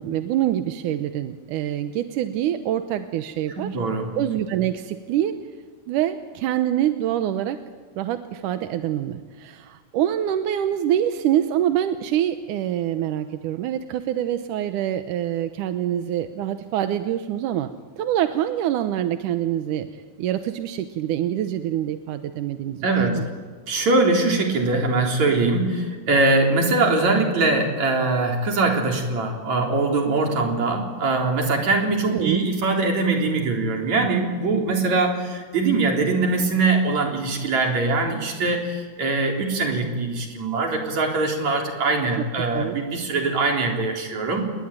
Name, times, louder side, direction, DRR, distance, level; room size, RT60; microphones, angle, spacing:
voice 1, 0.0-3.7 4.2-5.3 5.9-7.6 8.0-17.7 18.0-19.9 20.2-22.9 23.2-23.3 32.1-32.4 42.2-42.3 42.5-42.8, right 11 dB, 90° right, 8 dB, 2.5 m, -25 dB
voice 2, 3.6-4.1 22.8-23.2 23.7-44.4, right 3 dB, 65° right, 2 dB, 5.1 m, -22 dB
29.0 x 21.5 x 9.1 m, 1.5 s
omnidirectional pair, 3.5 m